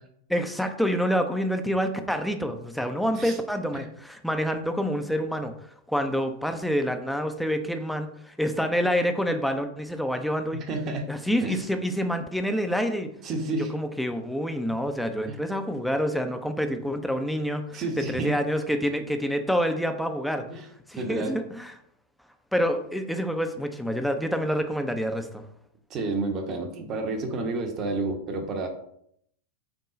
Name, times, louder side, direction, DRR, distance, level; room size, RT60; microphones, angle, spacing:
voice 1, 0.3-5.5 5.9-10.6 11.1-13.1 13.7-20.4 20.9-21.7 22.5-25.4, equal, ahead, 6 dB, 0.5 m, -27 dB
voice 2, 10.7-11.1 11.4-11.6 13.2-13.7 15.3-15.4 17.7-18.3 20.5-20.6 21.0-21.3 25.9-28.7, right 3 dB, 35° right, 4 dB, 0.9 m, -30 dB
6.0 x 2.3 x 3.7 m, 0.71 s
figure-of-eight pair, 90°, 0 cm